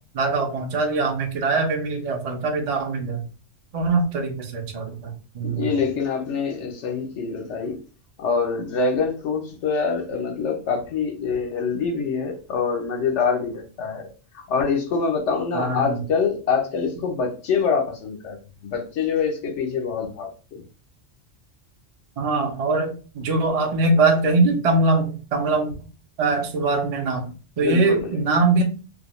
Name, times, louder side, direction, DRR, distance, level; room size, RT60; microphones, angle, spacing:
voice 1, 0.1-3.2 3.7-5.7 15.5-16.0 22.2-25.7 26.2-27.2 27.6-28.6, right 3 dB, 50° right, 0.4 m, -22 dB
voice 2, 5.4-7.8 8.2-14.1 14.3-20.6 27.6-28.1, left 5 dB, 75° left, 0.9 m, -25 dB
2.4 x 2.1 x 2.9 m
omnidirectional pair, 1.3 m